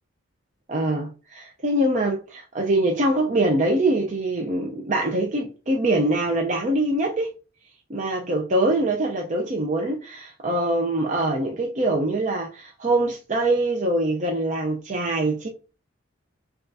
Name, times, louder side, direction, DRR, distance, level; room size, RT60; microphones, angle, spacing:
voice 1, 0.7-7.3 7.9-15.5, right 1 dB, 40° right, 0.5 m, -23 dB
5.5 x 2.4 x 2.6 m
head